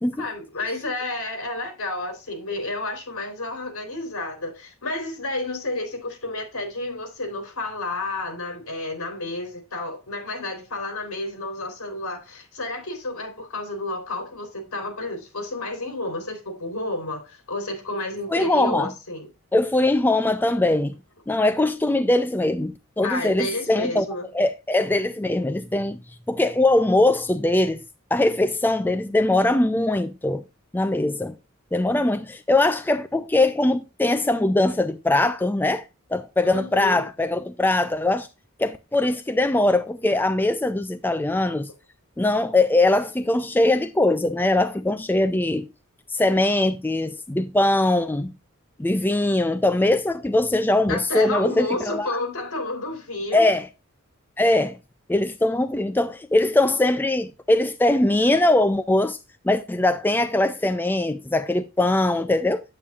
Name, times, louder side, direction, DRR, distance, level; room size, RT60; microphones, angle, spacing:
voice 1, 0.2-19.3 23.0-24.3 36.4-37.1 50.9-53.5, left 2 dB, 75° left, 3.7 m, -31 dB
voice 2, 18.3-18.9 19.5-21.0 21.3-24.1 24.3-26.0 26.3-27.8 28.1-30.4 30.7-31.4 31.7-35.9 36.1-38.3 38.6-41.7 42.2-45.7 46.1-48.3 48.8-52.2 53.3-53.7 54.4-54.8 55.1-59.2 59.4-62.6, left 2 dB, 10° left, 0.3 m, -21 dB
8.6 x 8.5 x 2.4 m
head